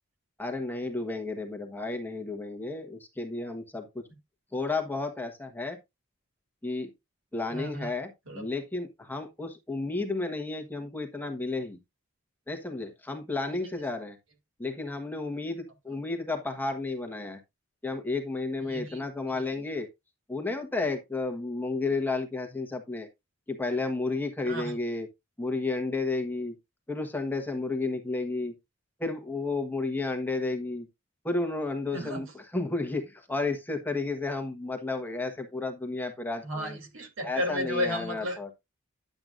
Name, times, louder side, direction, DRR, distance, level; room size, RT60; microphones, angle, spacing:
voice 1, 0.4-4.0 4.5-5.8 6.6-6.9 7.3-8.1 8.3-11.8 12.5-14.2 14.6-17.4 17.8-19.9 20.3-23.1 23.5-25.1 25.4-26.5 26.9-28.5 29.0-30.9 31.2-36.8 37.2-38.5, left 3 dB, 10° left, 1.3 m, -32 dB
voice 2, 7.5-7.9 8.3-8.5 13.5-13.7 18.7-19.0 19.3-19.4 24.4-24.7 31.9-32.2 36.4-38.5, left 1 dB, 70° right, 2.9 m, -34 dB
10.5 x 7.9 x 2.5 m
head